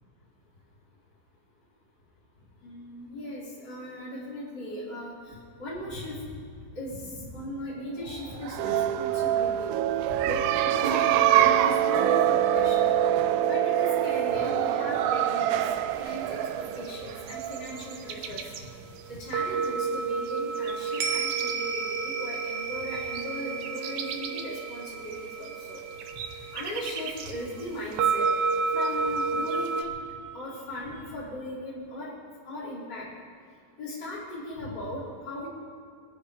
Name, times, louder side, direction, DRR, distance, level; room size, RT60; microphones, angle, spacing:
voice 1, 2.6-6.1 6.7-9.7 10.1-12.9 13.5-15.6 16.0-18.4 19.1-25.8 26.5-28.3 28.7-29.9 30.3-32.1 32.4-33.1 33.8-35.5, left 1 dB, 25° left, -7 dB, 4.8 m, -37 dB
sound 1, 8.4-17.9, right 11 dB, 90° right, 1.7 m, -25 dB
sound 2, 15.9-29.8, right 5 dB, 70° right, 2.0 m, -31 dB
21.5 x 12.5 x 5.3 m, 2.2 s
omnidirectional pair, 4.2 m